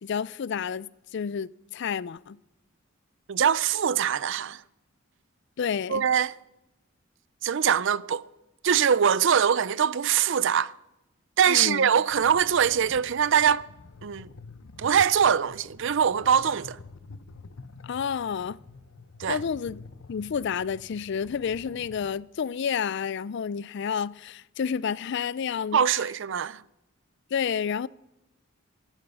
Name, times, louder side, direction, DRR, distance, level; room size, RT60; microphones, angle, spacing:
voice 1, 0.0-2.4 5.6-6.1 11.5-11.9 17.8-18.6 19.3-19.8 20.1-25.8 27.3-27.9, left 7 dB, 60° left, 0.4 m, -30 dB
voice 2, 3.3-4.6 5.9-6.3 7.4-8.2 8.6-10.7 11.4-13.6 14.0-14.3 14.8-16.8 19.2-19.4 25.7-26.6, right 8 dB, 65° right, 0.5 m, -23 dB
sound 1, 12.1-22.1, left 3 dB, 85° left, 0.8 m, -48 dB
16.0 x 12.5 x 5.4 m
head